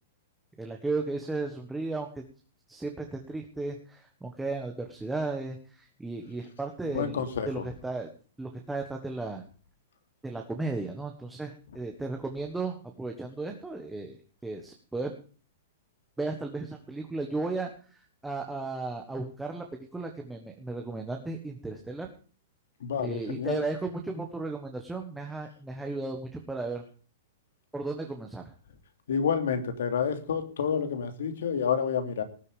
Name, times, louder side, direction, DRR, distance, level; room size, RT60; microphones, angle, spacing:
voice 1, 0.6-2.2 2.7-8.1 8.4-9.4 10.2-15.1 16.2-19.6 19.9-22.1 23.0-26.8 27.7-28.4, right 3 dB, 5° right, 3 dB, 1.4 m, -35 dB
voice 2, 6.9-7.6 22.8-23.6 29.1-32.2, left 7 dB, 80° left, 7 dB, 3.2 m, -29 dB
18.5 x 8.2 x 5.1 m, 0.41 s
supercardioid pair, 170°, 0 cm